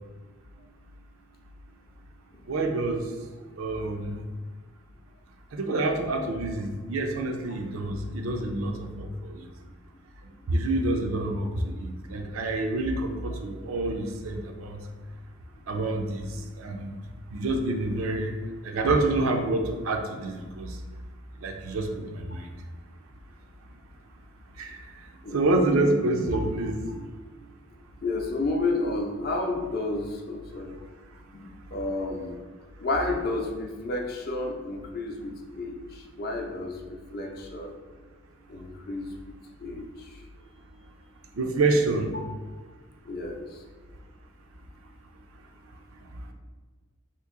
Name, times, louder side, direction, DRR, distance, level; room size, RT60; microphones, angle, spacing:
voice 1, 2.5-3.1 3.6-4.2 5.5-9.5 10.5-14.8 15.7-16.3 16.6-17.0 17.3-18.3 18.6-20.8 21.4-22.5 24.6-24.8 25.3-27.1 41.4-42.1, right 2 dB, 85° right, 4 dB, 0.5 m, -27 dB
voice 2, 25.2-25.5 28.0-30.7 31.3-32.4 32.8-37.7 38.5-39.1 39.6-40.2 43.0-43.6, left 2 dB, 50° left, 2 dB, 0.5 m, -31 dB
2.9 x 2.6 x 3.6 m, 1.4 s
head